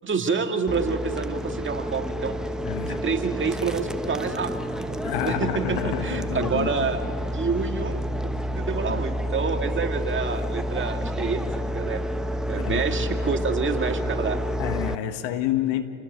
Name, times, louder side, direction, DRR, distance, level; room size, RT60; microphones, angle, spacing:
voice 1, 0.0-2.4 2.7-7.0 7.3-8.0 8.5-12.0 12.5-14.4, right 5 dB, 25° right, 5 dB, 1.9 m, -28 dB
sound 1, 0.7-15.0, equal, ahead, 0.9 m, -29 dB
voice 2, 2.6-3.0 5.0-6.7 8.9-9.0 12.6-12.8 14.6-15.8, left 11 dB, 60° left, 9 dB, 1.6 m, -28 dB
28.0 x 20.0 x 5.3 m, 2.4 s
hypercardioid pair, 85°, 49 cm